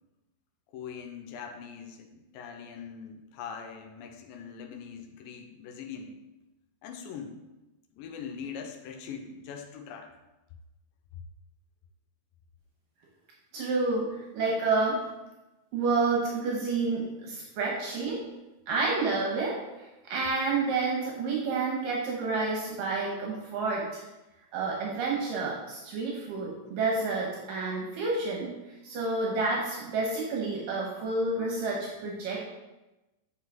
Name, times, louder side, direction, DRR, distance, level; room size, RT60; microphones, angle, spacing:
voice 1, 0.7-6.2 6.8-7.4 7.9-10.2, left 6 dB, 85° left, 4 dB, 2.4 m, -42 dB
voice 2, 13.5-15.0 15.7-18.2 18.7-19.6 20.1-24.0 24.5-28.5 28.8-32.4, right 3 dB, 75° right, -2 dB, 2.5 m, -29 dB
8.2 x 5.3 x 3.6 m, 1.0 s
omnidirectional pair, 4.1 m